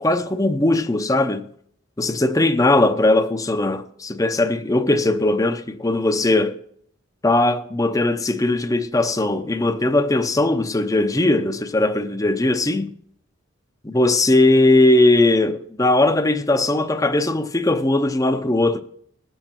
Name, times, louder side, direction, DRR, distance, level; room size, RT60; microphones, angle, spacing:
voice 1, 0.0-1.5 2.0-6.6 7.2-12.9 13.8-18.8, left 2 dB, 15° left, 0.7 m, -19 dB
20.0 x 8.1 x 4.5 m
head